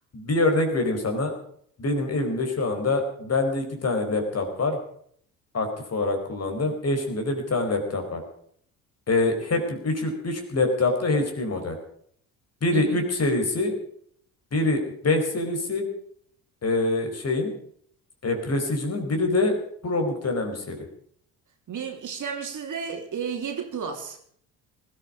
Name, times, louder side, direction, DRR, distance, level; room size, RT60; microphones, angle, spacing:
voice 1, 0.1-1.3 1.8-4.8 5.5-8.2 9.1-11.7 12.6-13.7 14.5-15.9 16.6-17.5 18.2-19.5 19.8-20.8, left 2 dB, 35° left, 5 dB, 4.6 m, -25 dB
voice 2, 12.7-13.0 21.7-24.2, right 6 dB, 45° right, 4 dB, 3.2 m, -32 dB
19.5 x 13.5 x 5.0 m, 0.63 s
hypercardioid pair, 55°, 42 cm